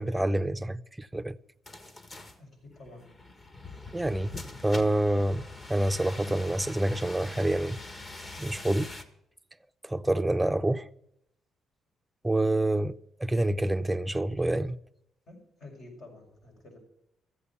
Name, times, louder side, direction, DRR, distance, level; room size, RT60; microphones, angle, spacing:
voice 1, 0.0-1.3 3.9-4.4 4.6-5.4 5.7-7.8 8.4-8.9 9.8-10.9 12.2-12.9 13.2-14.8, right 1 dB, 10° right, 0.6 m, -27 dB
sound 1, 1.7-9.0, left 2 dB, 30° left, 1.6 m, -43 dB
voice 2, 2.4-3.0 15.3-16.8, left 2 dB, 65° left, 5.7 m, -49 dB
14.0 x 8.4 x 7.0 m
cardioid pair, 90°, 0 cm